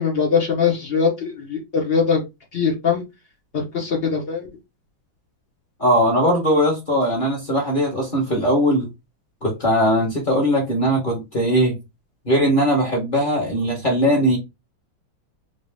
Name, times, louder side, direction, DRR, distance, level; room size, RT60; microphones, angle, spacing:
voice 1, 0.0-2.2 2.5-3.0 3.5-4.5, left 6 dB, 85° left, 0.5 m, -21 dB
voice 2, 5.8-8.9 9.4-11.8 12.2-14.4, equal, 35° left, 0.8 m, -19 dB
3.1 x 2.7 x 3.3 m
omnidirectional pair, 2.3 m